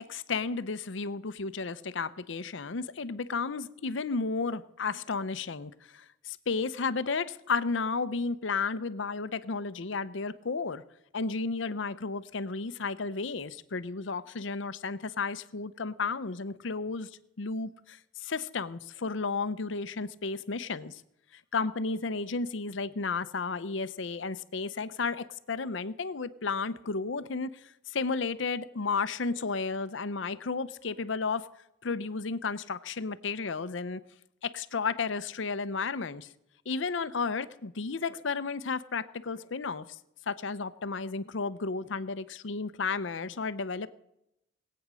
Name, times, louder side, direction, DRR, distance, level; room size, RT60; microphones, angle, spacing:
voice 1, 0.0-10.8 11.1-17.1 17.4-21.0 21.5-31.5 31.8-34.0 34.4-36.3 36.7-40.0 40.3-43.9, left 4 dB, 70° left, 14 dB, 0.7 m, -33 dB
19.5 x 8.7 x 6.2 m, 0.82 s
head